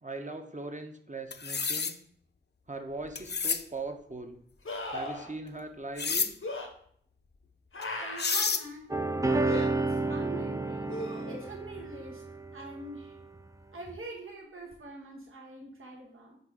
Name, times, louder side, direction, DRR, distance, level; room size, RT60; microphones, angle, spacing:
voice 1, 0.0-1.9 2.7-4.4 4.9-6.3, right 2 dB, 35° right, 4 dB, 0.8 m, -40 dB
sound 1, 1.3-1.9 3.2-3.6 6.0-6.3 7.8-7.9 8.2-8.6, left 5 dB, 55° left, 0.4 m, -29 dB
sound 2, 3.0-3.1 4.6-5.3 6.4-6.7 7.7-8.5 9.4-9.7 10.9-11.6 14.7-14.8, left 2 dB, 85° left, 0.9 m, -37 dB
voice 2, 8.0-10.9 11.3-12.2 12.5-13.2 13.7-16.4, right 2 dB, 85° right, -1 dB, 1.1 m, -44 dB
sound 3, 8.9-13.1 13.9-14.0, right 3 dB, 15° right, 0.4 m, -31 dB
5.0 x 4.1 x 4.7 m, 0.63 s
wide cardioid pair, 45°, 21 cm